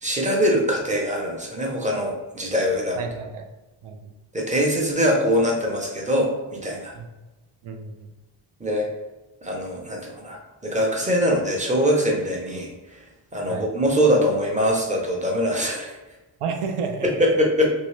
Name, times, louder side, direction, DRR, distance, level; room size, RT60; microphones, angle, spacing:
voice 1, 0.0-3.0 4.3-6.9 8.6-8.9 9.4-13.0 13.3-16.0 17.0-17.7, equal, 15° right, -1 dB, 0.5 m, -23 dB
voice 2, 3.0-3.4 3.8-4.1 7.0-7.1 7.6-8.1 13.5-13.7 16.4-17.1, right 5 dB, 80° right, 5 dB, 0.6 m, -31 dB
3.1 x 2.7 x 3.1 m, 1.1 s
wide cardioid pair, 175°, 50 cm